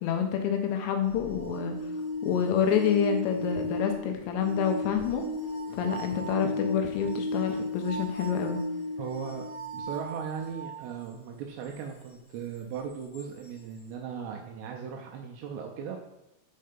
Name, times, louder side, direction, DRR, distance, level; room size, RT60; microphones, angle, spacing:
voice 1, 0.0-1.8 2.2-5.2 5.7-8.6, left 8 dB, 80° left, 4 dB, 2.7 m, -28 dB
sound 1, 1.1-10.8 13.1-13.2, left 1 dB, 65° left, 1.5 m, -35 dB
voice 2, 9.0-9.4 9.7-16.0, right 7 dB, 80° right, 2 dB, 2.5 m, -38 dB
6.6 x 4.3 x 5.1 m, 0.92 s
omnidirectional pair, 5.4 m